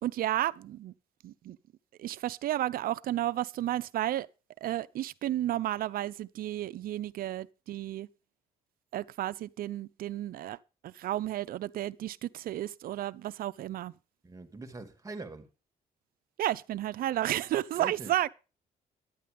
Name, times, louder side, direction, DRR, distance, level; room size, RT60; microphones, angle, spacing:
voice 1, 0.0-0.9 1.2-1.6 2.0-4.3 4.6-8.1 8.9-10.6 10.8-13.9 16.4-18.3, right 13 dB, 70° right, 0.6 m, -32 dB
voice 2, 14.2-15.5 17.8-18.1, right 3 dB, 20° right, 2.2 m, -43 dB
11.5 x 9.4 x 5.2 m
cardioid pair, 95°, 16 cm